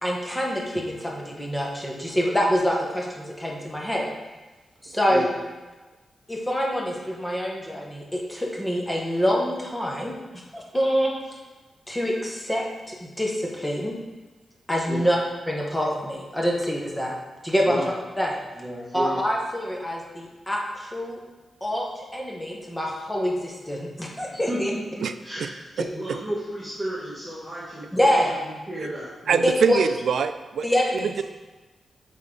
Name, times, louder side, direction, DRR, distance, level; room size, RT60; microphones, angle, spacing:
voice 1, 0.0-4.1 4.8-5.3 6.3-11.1 11.9-13.9 14.7-15.2 15.5-17.1 17.4-17.8 18.2-18.4 18.9-21.2 21.6-24.7 27.9-28.3 29.4-29.8 30.6-31.1, equal, 10° left, -2 dB, 1.0 m, -26 dB
voice 2, 18.5-19.2 24.5-25.4 25.9-28.1 28.7-29.4, right 1 dB, 10° right, -10 dB, 1.4 m, -32 dB
voice 3, 25.8-26.2 29.3-30.7 31.2-31.3, right 7 dB, 75° right, 10 dB, 0.3 m, -24 dB
8.2 x 3.7 x 3.7 m, 1.2 s
wide cardioid pair, 155°, 0 cm